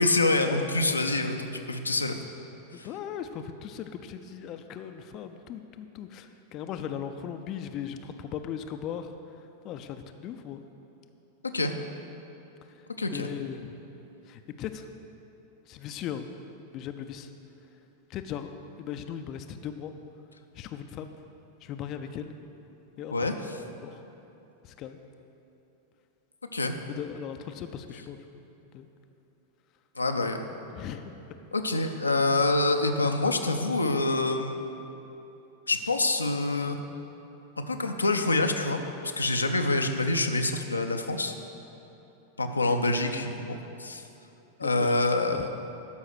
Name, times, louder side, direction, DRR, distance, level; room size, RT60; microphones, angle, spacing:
voice 1, 0.0-2.2 2.7-2.9 11.5-11.7 13.0-13.3 23.1-23.3 26.5-26.8 30.0-30.5 31.5-34.6 35.7-36.8 37.6-38.8 39.2-41.3 42.4-44.0 44.6-45.5, left 2 dB, 80° left, 5 dB, 0.6 m, -26 dB
voice 2, 1.9-2.2 2.7-10.7 12.7-13.7 14.2-14.9 15.7-16.3 16.7-17.3 18.1-19.9 20.5-21.2 21.6-22.4 23.0-23.3 23.8-24.0 24.6-25.0 26.8-28.2 28.7-28.9 30.7-31.1 44.6-44.9 45.3-45.5, left 9 dB, 35° left, 7 dB, 0.5 m, -38 dB
12.5 x 5.6 x 6.2 m, 3.0 s
figure-of-eight pair, 90°, 0 cm